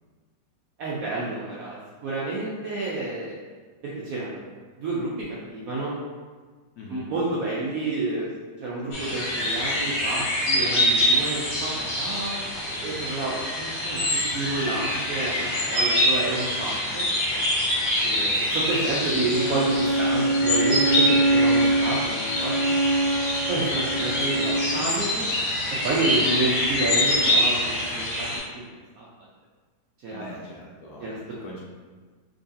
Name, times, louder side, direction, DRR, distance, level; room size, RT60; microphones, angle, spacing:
voice 1, 0.8-3.3 3.8-4.4 4.8-5.1 5.5-6.0 6.9-8.3 8.6-12.3 12.8-17.0 18.0-22.7 23.5-24.5 24.7-25.3 25.8-28.3 28.5-28.6 29.0-29.1 30.0-30.2 31.0-31.1, right 2 dB, 75° right, -6 dB, 0.8 m, -29 dB
voice 2, 6.8-7.1 18.3-18.4 18.8-19.1 24.4-24.8 30.1-31.6, left 1 dB, 70° left, -4 dB, 0.9 m, -40 dB
sound 1, 8.9-28.4, left 1 dB, 55° left, 1.2 m, -25 dB
Bowed string instrument, 19.3-24.8, right 2 dB, 30° left, 1.2 m, -24 dB
3.8 x 3.0 x 2.6 m, 1.4 s
omnidirectional pair, 2.0 m